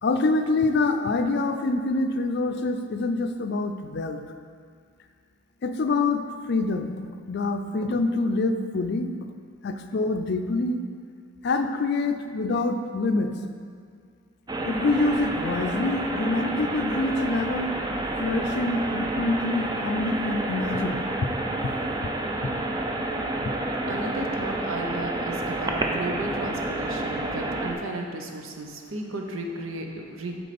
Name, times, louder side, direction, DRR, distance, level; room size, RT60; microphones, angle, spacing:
voice 1, 0.0-4.3 5.6-7.0 7.3-9.1 9.6-10.8 11.4-13.3 14.6-17.8 18.2-21.0, left 3 dB, 55° left, 7 dB, 0.4 m, -26 dB
sound 1, 14.5-27.7, right 2 dB, 20° right, 0.4 m, -29 dB
voice 2, 23.9-30.4, right 1 dB, 90° right, 2 dB, 0.8 m, -34 dB
8.1 x 4.6 x 4.3 m, 2.1 s
head